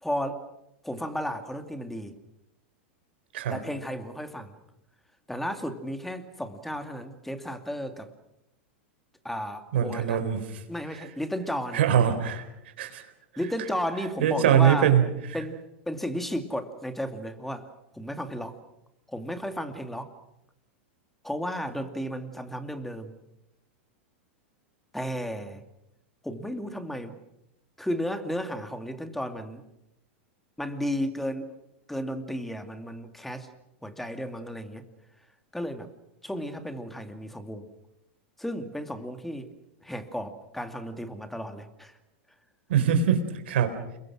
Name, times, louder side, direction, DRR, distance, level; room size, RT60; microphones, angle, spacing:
voice 1, 0.0-0.4 0.8-2.2 3.5-4.6 5.3-8.1 9.2-10.2 10.7-11.8 13.4-14.9 15.3-17.7 17.9-18.6 19.1-20.1 21.2-23.1 24.9-25.6 26.2-27.2 27.8-29.6 30.6-31.5 31.9-33.5 33.8-34.8 35.5-35.9 36.2-37.7 38.4-39.5 39.8-41.9, equal, 5° left, 7 dB, 2.5 m, -33 dB
voice 2, 9.7-10.5 11.7-12.4 12.8-13.0 14.2-15.1 42.7-43.8, right 9 dB, 70° right, 8 dB, 4.0 m, -22 dB
29.5 x 22.0 x 6.2 m, 0.87 s
hypercardioid pair, 105°, 6 cm